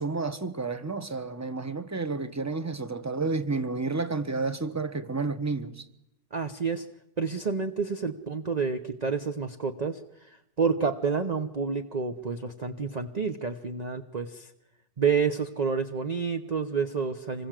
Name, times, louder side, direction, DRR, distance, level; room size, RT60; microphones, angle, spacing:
voice 1, 0.0-5.8, right 3 dB, 10° right, 1.2 m, -31 dB
voice 2, 6.3-6.8 7.2-10.3 10.6-14.5 15.0-17.5, right 5 dB, 30° right, 0.9 m, -29 dB
26.5 x 21.0 x 7.6 m
omnidirectional pair, 1.6 m